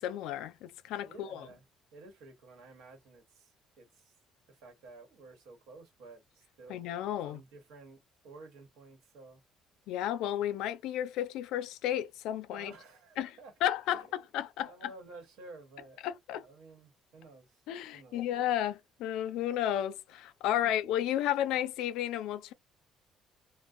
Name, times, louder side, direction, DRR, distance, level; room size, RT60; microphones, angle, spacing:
voice 1, 0.0-1.5 6.7-7.4 9.9-12.7 13.2-13.3 13.6-14.0 14.3-14.9 16.0-16.4 17.7-22.5, left 11 dB, 90° left, 0.4 m, -32 dB
voice 2, 1.0-1.6 1.9-4.1 4.5-6.9 7.2-9.4 12.5-13.5 13.9-14.1 14.6-16.0 16.4-17.6 17.9-18.2 20.5-20.7, right 3 dB, 90° right, 1.0 m, -53 dB
2.6 x 2.0 x 2.4 m
cardioid pair, 180°, 0 cm